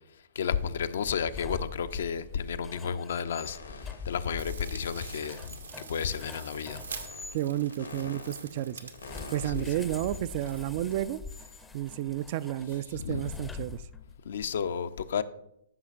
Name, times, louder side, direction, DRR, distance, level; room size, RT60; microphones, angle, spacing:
voice 1, 0.3-6.8 9.6-9.7 13.0-13.3 14.3-15.2, left 7 dB, 60° left, 0.5 m, -32 dB
sound 1, 1.2-7.4 9.0-14.2, left 4 dB, 10° left, 0.5 m, -44 dB
sound 2, 3.3-4.5 4.9-9.9, left 3 dB, 80° left, 1.4 m, -47 dB
sound 3, 4.4-11.0, right 5 dB, 80° right, 1.1 m, -46 dB
voice 2, 7.3-8.8 9.3-11.2 11.7-13.8, right 13 dB, 45° right, 0.3 m, -31 dB
13.0 x 6.3 x 2.5 m
figure-of-eight pair, 115°, 0 cm